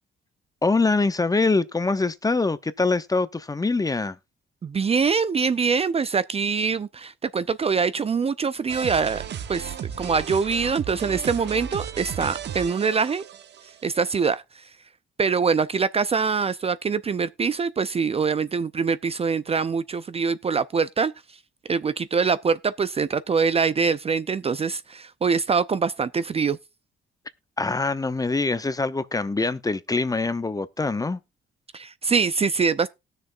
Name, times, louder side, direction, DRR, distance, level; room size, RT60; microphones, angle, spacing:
voice 1, 0.6-4.2 27.6-31.2, left 3 dB, 20° left, 0.7 m, -24 dB
voice 2, 4.6-9.2 9.5-13.2 13.8-14.4 15.2-21.1 21.7-26.6 31.7-32.9, right 5 dB, 30° right, 0.5 m, -24 dB
sound 1, 8.7-13.8, right 9 dB, 60° right, 1.1 m, -35 dB
18.5 x 6.6 x 2.5 m
cardioid pair, 90°, 20 cm